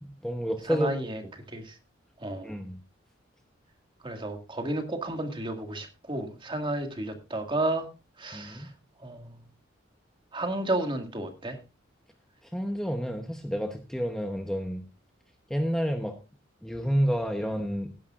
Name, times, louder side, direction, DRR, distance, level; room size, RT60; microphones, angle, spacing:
voice 1, 0.0-0.9 2.4-2.8 8.3-8.7 12.4-14.8 15.5-16.2 16.6-17.9, equal, 5° left, 4 dB, 1.0 m, -29 dB
voice 2, 0.7-1.2 1.5-1.8 2.2-2.5 4.0-7.9 8.2-8.7 9.0-9.4 10.3-11.6, right 1 dB, 25° right, 5 dB, 2.0 m, -32 dB
17.5 x 10.5 x 2.5 m, 0.29 s
head